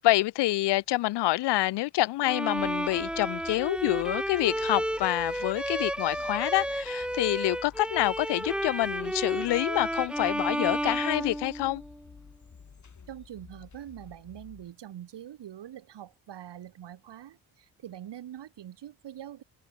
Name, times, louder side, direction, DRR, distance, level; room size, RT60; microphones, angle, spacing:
voice 1, 0.0-11.8, left 17 dB, 65° left, 0.8 m, -27 dB
Bowed string instrument, 2.2-12.1, right 1 dB, ahead, 0.8 m, -32 dB
sound 1, 2.6-14.7, left 6 dB, 40° left, 4.3 m, -52 dB
voice 2, 13.1-19.4, right 11 dB, 65° right, 8.0 m, -44 dB
hypercardioid pair, 50°, 44 cm